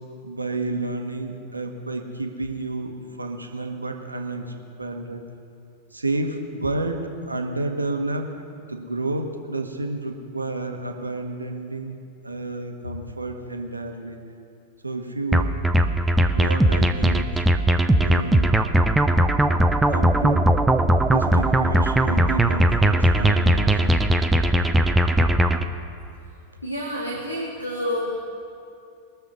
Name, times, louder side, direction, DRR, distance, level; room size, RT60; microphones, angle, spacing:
voice 1, 0.2-5.2 5.9-8.4 8.7-12.0 12.2-14.2 14.8-15.6 16.3-17.4 18.0-18.5 19.9-20.6 21.1-24.0, right 2 dB, 80° right, 4 dB, 1.2 m, -30 dB
sound 1, 15.3-25.6, right 1 dB, 5° right, 0.7 m, -19 dB
voice 2, 26.6-28.2, equal, 85° left, -1 dB, 1.5 m, -28 dB
21.5 x 7.2 x 5.6 m, 2.5 s
figure-of-eight pair, 90°, 0 cm